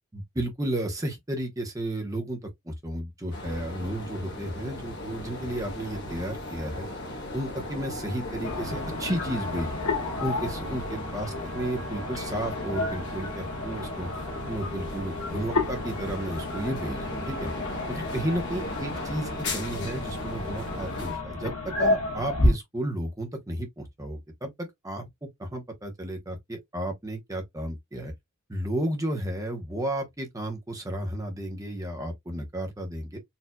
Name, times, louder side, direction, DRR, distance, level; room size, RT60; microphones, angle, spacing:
voice 1, 0.1-6.9 7.3-9.8 10.2-14.1 14.5-17.5 17.9-28.1 28.5-33.2, right 1 dB, 15° right, 0.8 m, -33 dB
sound 1, 3.3-21.1, left 1 dB, 55° left, 1.3 m, -36 dB
sound 2, 8.4-22.5, left 2 dB, 85° left, 1.4 m, -31 dB
4.3 x 2.6 x 2.2 m
head